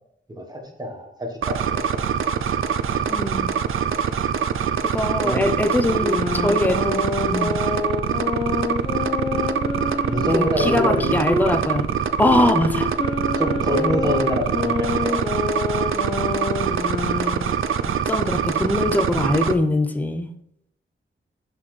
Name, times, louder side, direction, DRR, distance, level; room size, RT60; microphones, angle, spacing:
voice 1, 0.4-2.0 2.9-3.0 5.2-5.5 9.3-9.5 10.0-11.2 12.4-12.5 13.4-15.2, equal, 20° right, 2 dB, 1.3 m, -26 dB
sound 1, 1.4-19.5, right 7 dB, 80° right, 0.4 m, -24 dB
voice 2, 3.1-3.6 4.8-7.5 10.3-11.9 12.2-12.9 17.2-17.5 18.0-20.3, left 1 dB, 10° left, 7 dB, 0.5 m, -22 dB
sound 2, 5.8-11.5 12.2-17.6, left 4 dB, 25° left, 1.1 m, -27 dB
11.5 x 4.2 x 3.2 m, 0.76 s
wide cardioid pair, 150°, 21 cm